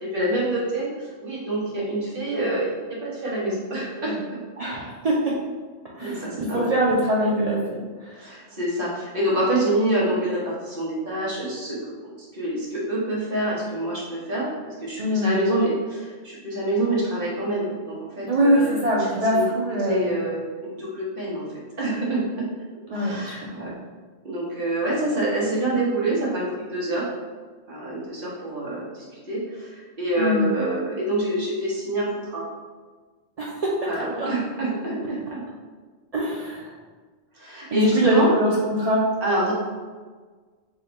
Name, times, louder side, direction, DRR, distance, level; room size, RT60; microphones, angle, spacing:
voice 1, 0.0-2.7 3.0-4.4 6.0-6.7 8.1-11.8 12.3-19.5 19.8-21.4 21.8-22.5 22.9-23.7 24.2-27.0 27.7-32.4 33.9-35.4 37.3-38.3 39.2-39.5, right 1 dB, 50° right, -6 dB, 1.2 m, -26 dB
voice 2, 4.6-5.4 6.0-8.2 15.0-15.4 18.2-20.2 22.9-23.7 30.2-30.5 33.4-33.7 34.0-34.3 36.1-36.7 37.7-39.0, equal, 65° right, -5 dB, 0.3 m, -23 dB
3.5 x 2.2 x 3.9 m, 1.4 s
omnidirectional pair, 1.2 m